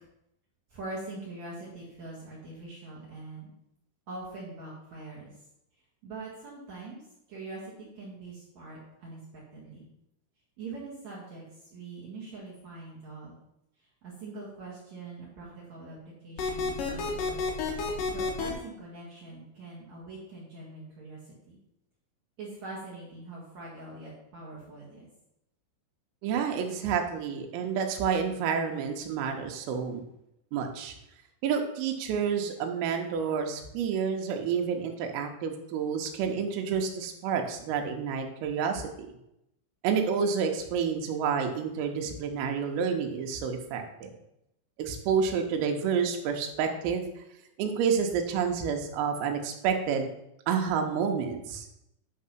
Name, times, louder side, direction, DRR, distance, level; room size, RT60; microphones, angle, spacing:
voice 1, 0.7-3.5 4.1-5.3 6.0-7.0 7.3-9.9 10.6-13.3 14.0-17.4 18.0-21.6 22.4-25.1, right 2 dB, 60° right, -6 dB, 1.9 m, -43 dB
sound 1, 16.4-18.5, left 4 dB, 85° left, 1.9 m, -30 dB
voice 2, 26.2-30.0 30.5-30.9 31.4-39.1 39.8-44.1 44.8-47.1 47.6-50.1 50.5-51.7, right 6 dB, 90° right, 4 dB, 3.7 m, -29 dB
10.0 x 3.8 x 5.9 m, 0.82 s
omnidirectional pair, 6.0 m